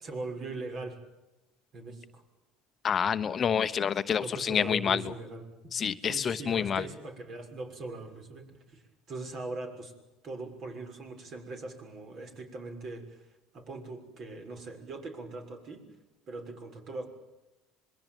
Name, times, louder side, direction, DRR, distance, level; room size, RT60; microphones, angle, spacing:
voice 1, 0.0-1.0 1.7-2.2 4.2-5.4 6.0-8.8 9.1-9.9 10.2-15.9 16.3-17.1, right 2 dB, 45° right, 6 dB, 6.4 m, -41 dB
voice 2, 2.8-5.0 5.7-6.8, left 7 dB, 35° left, 11 dB, 1.0 m, -28 dB
26.5 x 21.5 x 9.2 m, 1.0 s
supercardioid pair, 100°, 0 cm